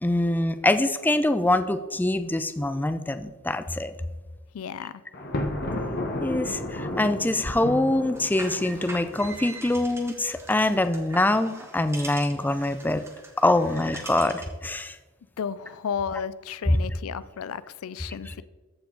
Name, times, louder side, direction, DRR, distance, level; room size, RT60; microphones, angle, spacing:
voice 1, 0.0-3.9 6.2-13.0 13.4-15.0 16.7-16.8 18.3-18.4, left 1 dB, 10° left, 10 dB, 0.3 m, -24 dB
voice 2, 4.5-5.0 15.4-18.4, left 7 dB, 75° left, 17 dB, 0.4 m, -33 dB
Thunder, 5.1-9.3, left 1 dB, 45° left, 1.1 m, -32 dB
sound 1, 8.1-14.6, right 2 dB, 10° right, 1.0 m, -43 dB
14.0 x 4.7 x 3.8 m, 1.3 s
head